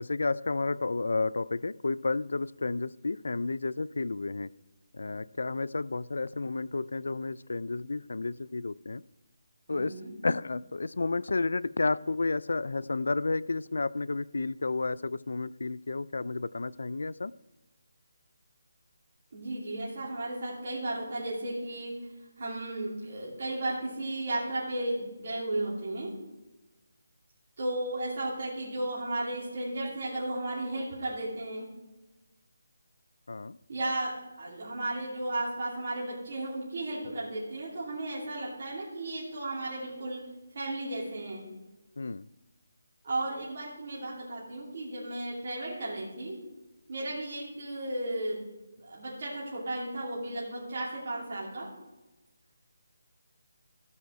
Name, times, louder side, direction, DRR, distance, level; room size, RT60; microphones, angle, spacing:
voice 1, 0.0-4.5 4.9-9.0 9.7-9.9 10.2-17.3 33.3-33.6 42.0-42.3, left 3 dB, 65° left, 19 dB, 0.3 m, -31 dB
voice 2, 9.7-10.1 19.3-21.9 22.4-26.1 27.6-31.6 33.7-34.1 34.4-40.2 40.5-41.4 43.0-46.4 46.9-48.4 48.8-51.7, right 1 dB, 35° right, -7 dB, 2.9 m, -34 dB
16.0 x 5.6 x 4.6 m, 1.1 s
hypercardioid pair, 180°, 0 cm